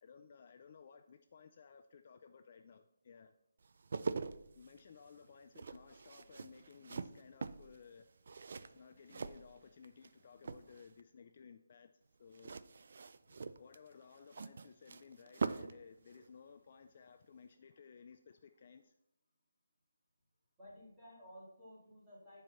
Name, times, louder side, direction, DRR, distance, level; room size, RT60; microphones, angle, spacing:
voice 1, 0.0-3.3 4.5-8.1 8.7-12.6 13.6-18.9, left 6 dB, 30° left, 8 dB, 0.4 m, -58 dB
sound 1, 3.6-10.1 10.4-11.0 12.3-15.8 16.1-16.3, right 4 dB, 45° right, 0.4 m, -43 dB
voice 2, 20.6-22.4, equal, 10° right, -9 dB, 2.6 m, -56 dB
10.5 x 4.7 x 5.6 m, 0.80 s
hypercardioid pair, 175°, 0 cm